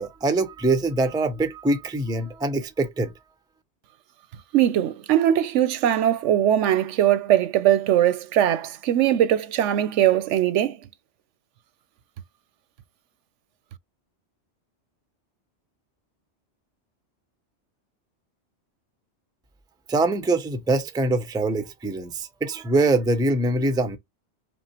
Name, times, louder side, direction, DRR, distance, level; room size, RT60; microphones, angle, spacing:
voice 1, 0.0-3.1 19.9-24.0, right 2 dB, 5° right, 0.4 m, -23 dB
voice 2, 4.5-10.8, right 11 dB, 85° right, 0.9 m, -20 dB
5.4 x 2.0 x 2.9 m
omnidirectional pair, 1.2 m